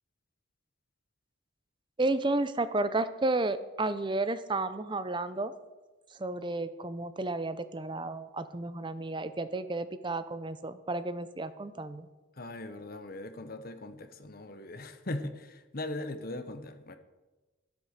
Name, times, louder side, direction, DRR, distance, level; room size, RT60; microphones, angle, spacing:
voice 1, 2.0-5.5 6.1-12.1, right 2 dB, 25° right, 12 dB, 0.6 m, -32 dB
voice 2, 12.3-17.0, left 2 dB, 45° left, 9 dB, 1.0 m, -39 dB
12.5 x 8.2 x 6.6 m, 1.2 s
head